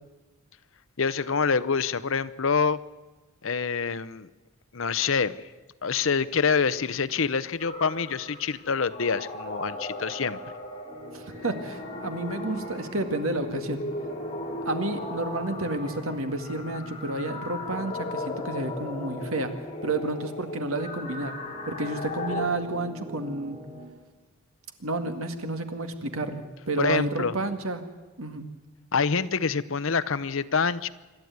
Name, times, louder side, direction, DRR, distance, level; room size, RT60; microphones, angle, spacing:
voice 1, 1.0-2.8 3.4-4.3 4.7-5.3 5.8-10.4 26.8-27.3 28.9-30.9, left 5 dB, 70° left, 15 dB, 0.8 m, -26 dB
Horror Ambience (Loopable), 7.6-22.5, left 1 dB, 30° left, 2.8 m, -37 dB
sound 1, 10.9-23.9, left 1 dB, 25° right, 5.9 m, -45 dB
voice 2, 11.1-13.8 14.7-19.5 19.8-21.4 21.7-23.6 24.8-27.8 28.2-28.4, right 2 dB, 85° right, 7 dB, 2.0 m, -30 dB
26.5 x 12.0 x 9.4 m, 1.2 s
head